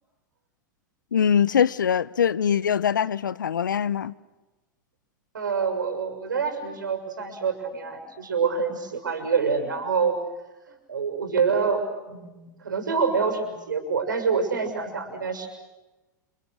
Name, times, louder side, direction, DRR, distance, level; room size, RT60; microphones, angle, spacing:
voice 1, 1.1-4.1, left 8 dB, 85° left, 0.9 m, -22 dB
voice 2, 5.3-10.2 10.7-15.5, right 5 dB, 85° right, 6.7 m, -26 dB
30.0 x 29.5 x 6.5 m
hypercardioid pair, 100°, 10 cm